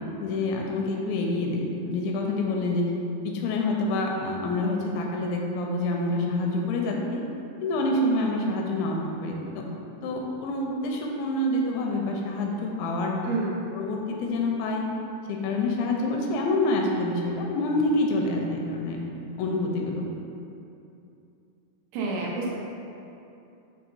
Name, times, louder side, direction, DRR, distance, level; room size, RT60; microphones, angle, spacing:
voice 1, 0.2-2.9 3.2-7.2 7.6-9.7 10.0-13.2 13.7-14.8 15.3-19.0 19.4-20.1, left 2 dB, 85° left, 0 dB, 2.8 m, -27 dB
voice 2, 13.2-13.6 21.9-22.6, right 3 dB, 80° right, -3 dB, 2.8 m, -28 dB
7.3 x 2.7 x 5.3 m, 2.7 s
omnidirectional pair, 5.3 m